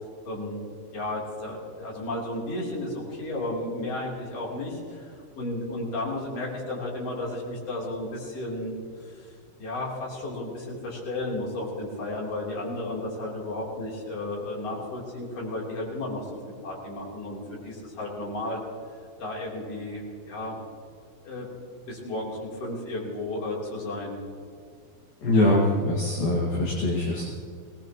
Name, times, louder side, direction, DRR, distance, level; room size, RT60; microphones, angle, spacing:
voice 1, 0.3-0.6 0.9-8.7 9.0-9.3 9.6-16.3 16.6-18.6 19.2-20.6 21.2-21.5 21.9-24.2, left 1 dB, 35° left, -4 dB, 3.8 m, -33 dB
voice 2, 25.2-27.3, left 1 dB, 55° left, -3 dB, 3.1 m, -23 dB
22.5 x 18.0 x 3.0 m, 2.3 s
omnidirectional pair, 5.8 m